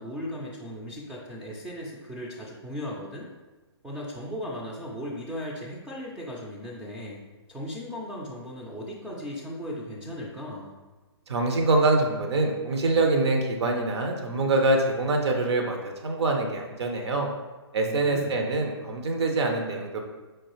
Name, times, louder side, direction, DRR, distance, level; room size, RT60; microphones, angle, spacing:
voice 1, 0.0-3.3 3.8-7.2 7.5-10.7 17.9-18.5, equal, 5° right, -5 dB, 0.3 m, -37 dB
voice 2, 11.3-17.3 17.7-20.0, right 2 dB, 65° right, 2 dB, 0.7 m, -25 dB
4.5 x 2.4 x 3.0 m, 1.2 s
hypercardioid pair, 135°, 15 cm